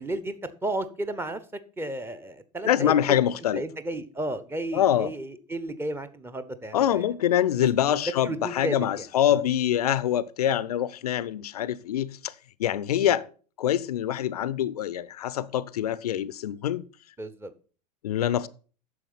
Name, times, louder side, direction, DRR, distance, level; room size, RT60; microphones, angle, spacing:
voice 1, 0.0-1.4 1.8-2.9 3.5-7.0 7.9-9.4 13.0-13.1 17.2-17.5, right 1 dB, 10° right, 1.0 m, -33 dB
voice 2, 2.7-3.6 4.7-5.1 6.7-12.3 12.6-13.3 13.6-16.8 18.0-18.5, left 11 dB, 65° left, 0.6 m, -25 dB
9.4 x 6.9 x 5.7 m
figure-of-eight pair, 85°, 21 cm